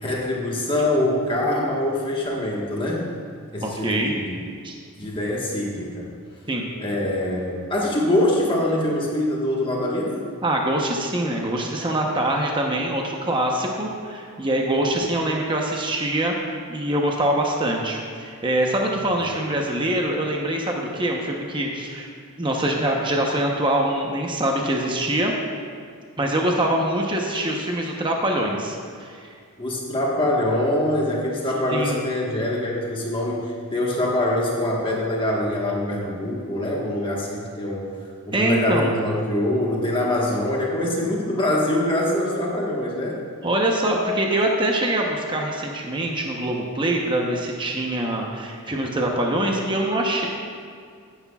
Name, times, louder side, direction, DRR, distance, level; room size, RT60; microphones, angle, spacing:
voice 1, 0.0-3.1 3.5-4.4 5.0-6.1 6.8-10.2 29.6-37.9 38.3-43.1, left 1 dB, 25° left, -3 dB, 1.4 m, -24 dB
voice 2, 3.6-4.1 4.6-4.7 6.5-6.7 10.4-22.1 22.4-25.3 26.2-29.3 31.7-32.0 38.3-38.9 43.4-50.3, right 1 dB, 20° right, 0 dB, 0.9 m, -24 dB
15.0 x 10.0 x 2.4 m, 2.2 s
head